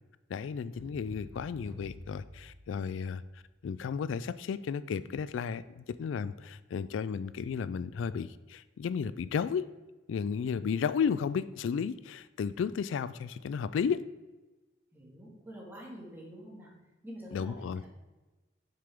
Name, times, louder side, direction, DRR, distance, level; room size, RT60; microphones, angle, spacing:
voice 1, 0.3-3.2 3.6-9.7 10.1-14.0 17.3-17.8, left 6 dB, 90° left, 15 dB, 0.3 m, -33 dB
sound 1, 0.7-3.3, equal, 35° left, 2.0 m, -50 dB
voice 2, 14.9-16.7 17.0-17.9, equal, 10° right, -3 dB, 1.9 m, -47 dB
6.8 x 6.6 x 3.5 m, 1.1 s
head